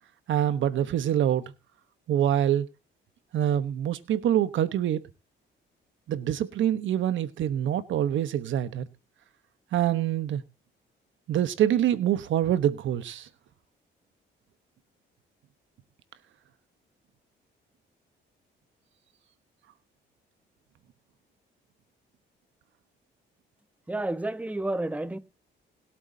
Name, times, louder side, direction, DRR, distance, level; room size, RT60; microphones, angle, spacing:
voice 1, 0.3-1.5 2.1-2.7 3.3-5.0 6.1-8.8 9.7-10.4 11.3-13.3, right 11 dB, 75° right, 1.1 m, -25 dB
voice 2, 23.9-25.2, right 2 dB, 5° right, 1.0 m, -30 dB
21.0 x 8.3 x 2.8 m
cardioid pair, 90°, 20 cm